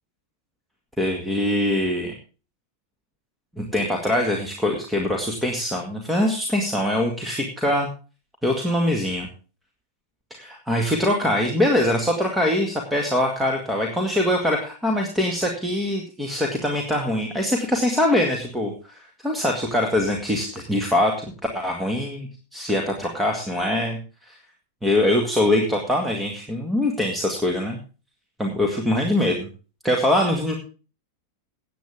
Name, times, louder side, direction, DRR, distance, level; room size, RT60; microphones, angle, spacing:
voice 1, 1.0-2.1 3.6-7.9 8.4-9.3 10.3-21.3 21.5-24.0 24.3-24.4 24.8-27.8 28.4-29.5 29.8-30.6, left 1 dB, 5° right, 1 dB, 2.0 m, -23 dB
17.5 x 8.6 x 3.5 m, 0.35 s
figure-of-eight pair, 90°, 0 cm